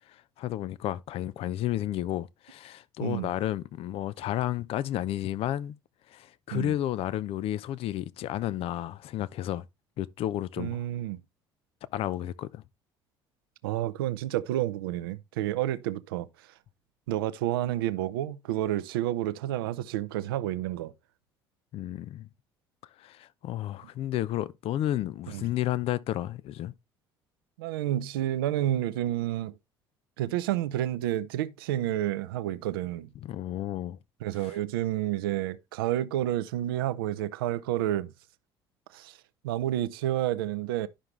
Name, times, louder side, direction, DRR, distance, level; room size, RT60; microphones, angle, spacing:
voice 1, 0.1-5.8 6.1-9.7 10.0-10.8 11.9-12.6 21.7-22.3 23.0-26.7 33.2-34.0, left 13 dB, 55° left, 0.6 m, -32 dB
voice 2, 3.0-3.3 6.5-6.7 10.6-11.2 13.6-16.3 17.1-20.9 25.3-25.4 27.6-29.5 30.2-33.1 34.2-38.1 38.9-39.2 39.4-40.9, right 13 dB, 75° right, 0.6 m, -30 dB
11.5 x 5.8 x 3.2 m
hypercardioid pair, 60°, 12 cm